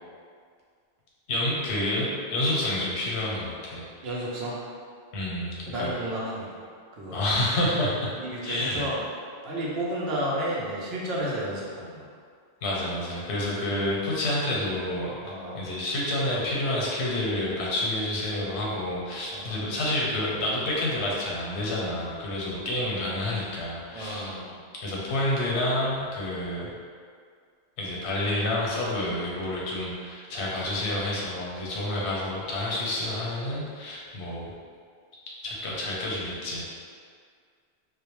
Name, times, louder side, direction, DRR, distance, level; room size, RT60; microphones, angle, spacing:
voice 1, 1.3-3.9 5.1-5.9 7.1-8.1 8.4-8.9 12.6-24.3 24.8-26.7 27.8-34.5 35.4-36.7, left 1 dB, 90° left, -5 dB, 0.9 m, -29 dB
voice 2, 4.0-4.6 5.7-6.5 7.0-7.2 8.1-9.0 9.4-12.1 15.2-15.7 19.3-19.7 23.9-24.6, right 1 dB, 70° right, -4 dB, 0.8 m, -32 dB
2.3 x 2.1 x 2.9 m, 2.1 s
omnidirectional pair, 1.1 m